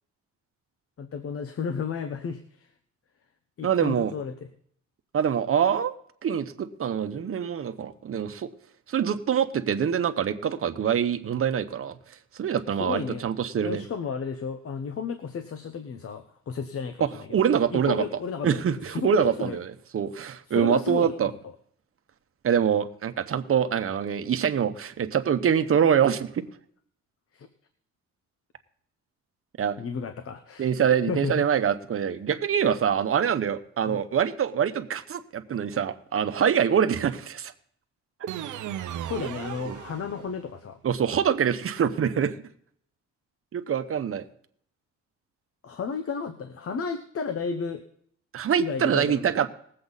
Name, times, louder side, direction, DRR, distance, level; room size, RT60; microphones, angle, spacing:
voice 1, 1.0-2.7 3.6-4.5 12.8-13.2 13.6-17.4 17.7-19.6 20.5-21.5 27.3-27.5 29.8-30.7 31.1-31.5 33.8-34.0 39.1-40.8 45.6-47.8 48.6-49.4, left 5 dB, 50° left, 9 dB, 1.0 m, -33 dB
voice 2, 3.6-4.1 5.1-5.9 6.2-8.5 8.9-12.0 12.4-13.8 17.0-18.0 18.4-19.6 19.9-21.3 22.4-26.4 29.6-29.8 30.6-37.5 38.2-38.3 39.7-39.8 40.8-42.3 43.5-44.2 48.3-49.5, right 8 dB, 45° right, 9 dB, 1.1 m, -25 dB
sound 1, 38.3-40.6, right 11 dB, 75° right, 0.8 m, -36 dB
20.0 x 7.8 x 4.1 m, 0.65 s
cardioid pair, 90°, 30 cm